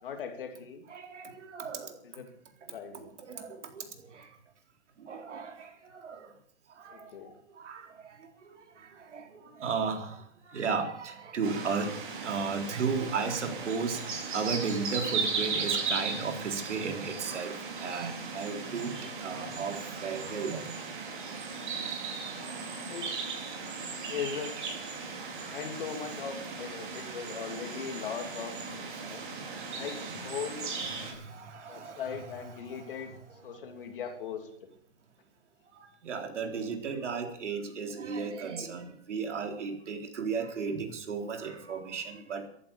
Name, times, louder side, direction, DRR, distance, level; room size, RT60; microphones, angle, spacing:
voice 1, 0.0-0.8 2.0-2.3 2.7-3.0 6.9-7.3 22.9-23.2 24.1-24.5 25.5-28.5 29.1-29.2 29.7-30.7 31.7-33.1 33.4-34.5, left 7 dB, 50° left, 6 dB, 2.8 m, -39 dB
voice 2, 0.9-2.0 2.9-4.3 5.0-6.3 6.8-7.1 7.6-8.2 8.5-20.8 21.2-22.6 25.3-25.6 27.9-28.0 28.9-29.0 29.5-29.6 30.9-33.2 35.8-42.5, right 5 dB, 85° right, 5 dB, 4.2 m, -35 dB
sound 1, 11.4-31.1, right 4 dB, 45° right, 4.5 m, -37 dB
15.0 x 11.0 x 8.6 m, 0.68 s
hypercardioid pair, 180°, 35 cm